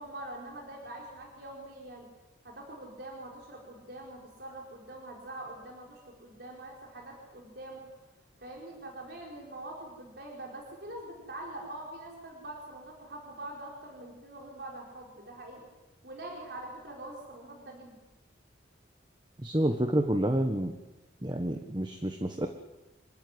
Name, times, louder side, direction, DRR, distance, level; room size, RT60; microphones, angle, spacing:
voice 1, 0.0-2.1 2.4-7.9 8.4-15.6 16.0-18.0, right 1 dB, 60° right, -1 dB, 4.7 m, -44 dB
voice 2, 19.4-20.7 21.2-22.5, right 1 dB, 25° right, 6 dB, 1.4 m, -28 dB
26.5 x 15.0 x 9.8 m, 1.0 s
head